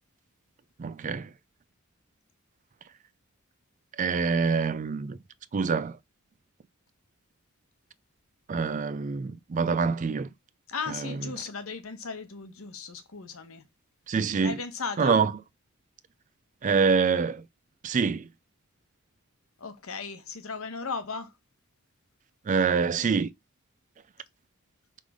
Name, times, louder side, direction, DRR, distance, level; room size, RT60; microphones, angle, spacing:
voice 1, 0.8-1.3 4.0-5.2 5.5-6.0 8.5-10.3 14.1-14.6 15.0-15.3 16.6-17.4 17.8-18.3 22.5-23.3, right 5 dB, 35° right, 0.3 m, -25 dB
voice 2, 10.7-13.7 14.4-15.2 19.6-21.3, left 4 dB, 75° left, 1.0 m, -36 dB
5.3 x 3.6 x 4.9 m
head